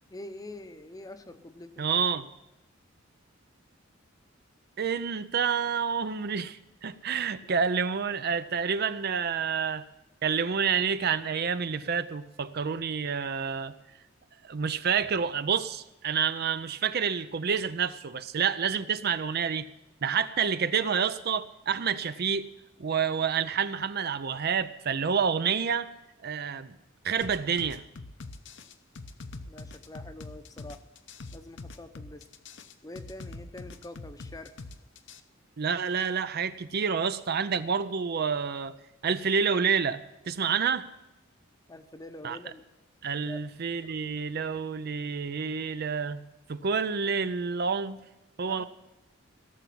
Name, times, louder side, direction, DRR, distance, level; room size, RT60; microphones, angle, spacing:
voice 1, 0.1-1.9 7.4-7.6 29.4-30.8 31.3-32.3 32.8-34.5 41.7-42.7 43.2-43.4 48.4-48.6, left 1 dB, 20° left, 9 dB, 0.8 m, -45 dB
voice 2, 1.8-2.3 4.8-9.8 10.2-13.7 14.4-19.7 20.0-22.5 22.8-25.9 26.2-26.7 27.0-27.8 35.6-38.7 39.0-40.9 42.2-42.4 43.0-46.2 46.5-48.0 48.4-48.6, right 6 dB, 50° right, 13 dB, 0.5 m, -28 dB
sound 1, 27.2-35.2, left 3 dB, 60° left, 0.8 m, -43 dB
17.0 x 7.1 x 8.5 m, 0.93 s
head